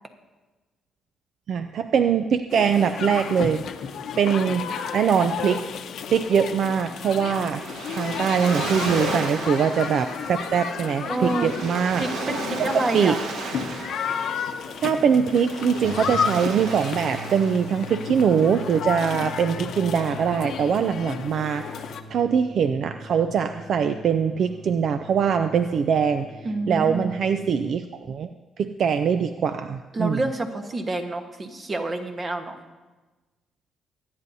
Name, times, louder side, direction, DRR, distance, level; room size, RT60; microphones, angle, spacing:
voice 1, 1.5-3.6 4.2-4.6 4.9-5.6 6.1-7.6 7.9-12.0 12.6-12.7 12.9-13.2 14.8-26.3 26.7-28.3 28.6-30.2, right 7 dB, 60° right, 9 dB, 0.4 m, -22 dB
sound 1, 2.5-22.0, left 7 dB, 70° left, 0.8 m, -32 dB
Waves surf, 7.0-19.4, right 3 dB, 85° right, 1.5 m, -35 dB
voice 2, 11.0-11.5 12.0-13.2 26.4-27.1 29.9-32.6, right 2 dB, 30° right, 5 dB, 1.3 m, -28 dB
sound 2, 15.8-27.6, right 1 dB, 5° left, 1.3 m, -41 dB
24.0 x 9.6 x 2.7 m, 1.2 s
cardioid pair, 110°, 0 cm